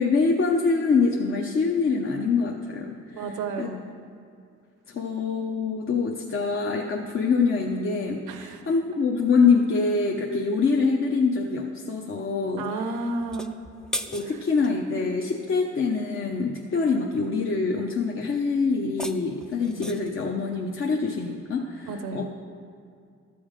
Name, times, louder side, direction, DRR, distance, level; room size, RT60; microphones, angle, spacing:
voice 1, 0.0-3.3 3.6-3.7 4.9-12.7 14.1-22.3, left 4 dB, 45° left, 1 dB, 0.9 m, -25 dB
voice 2, 3.1-3.9 8.3-8.6 12.6-13.5 14.2-14.4 21.8-22.3, right 3 dB, 85° right, 7 dB, 1.0 m, -32 dB
sound 1, 13.2-14.8 18.7-20.2, left 1 dB, ahead, 0.5 m, -37 dB
13.0 x 7.0 x 5.1 m, 2.3 s
cardioid pair, 90°, 30 cm